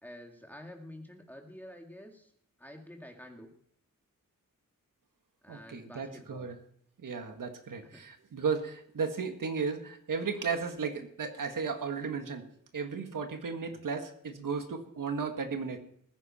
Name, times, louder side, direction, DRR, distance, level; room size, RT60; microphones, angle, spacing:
voice 1, 0.0-2.3 2.6-3.5 5.4-6.5 7.9-8.0 13.7-13.8, left 1 dB, 5° left, 2 dB, 2.2 m, -49 dB
voice 2, 5.5-6.5 7.0-12.5 12.7-15.8, right 5 dB, 70° right, 5 dB, 1.8 m, -35 dB
19.5 x 9.9 x 4.3 m, 0.68 s
wide cardioid pair, 115°, 34 cm